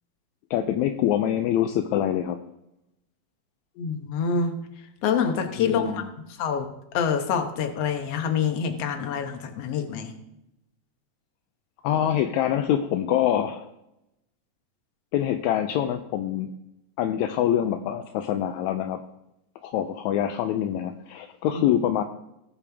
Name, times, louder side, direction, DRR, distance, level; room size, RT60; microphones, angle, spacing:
voice 1, 0.5-2.4 5.6-6.1 11.8-13.7 15.1-16.5 17.0-19.0 19.6-22.0, left 10 dB, 80° left, 7 dB, 1.9 m, -25 dB
voice 2, 3.8-4.6 5.0-6.0 6.4-6.7 6.9-10.1 21.5-21.6, left 6 dB, 60° left, 5 dB, 2.1 m, -26 dB
18.5 x 7.0 x 3.5 m, 0.87 s
omnidirectional pair, 3.4 m